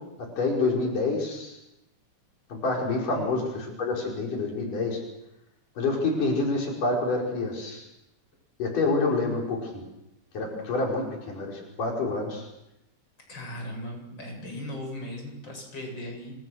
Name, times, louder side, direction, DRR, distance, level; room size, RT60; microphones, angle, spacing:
voice 1, 0.4-1.5 2.5-5.0 5.8-7.8 8.6-9.8 10.3-12.5, left 3 dB, 85° left, -1 dB, 6.6 m, -27 dB
voice 2, 13.3-16.3, left 1 dB, 35° left, 2 dB, 8.5 m, -38 dB
27.5 x 26.0 x 6.4 m, 0.86 s
omnidirectional pair, 3.6 m